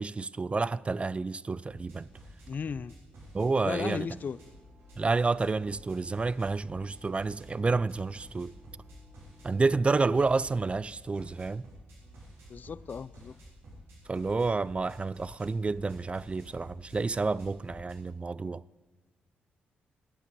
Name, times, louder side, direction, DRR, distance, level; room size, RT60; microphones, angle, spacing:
voice 1, 0.0-2.1 3.3-4.1 5.0-8.5 9.4-11.6 14.1-18.6, right 3 dB, 30° right, 0.3 m, -29 dB
sound 1, 1.7-17.9, right 1 dB, 85° right, 3.5 m, -51 dB
voice 2, 2.5-3.0 3.6-4.4 12.5-13.4, left 6 dB, 45° left, 0.3 m, -35 dB
sound 2, 3.9-10.5, right 2 dB, 10° right, 1.6 m, -61 dB
11.5 x 8.4 x 6.9 m
cardioid pair, 60°, 4 cm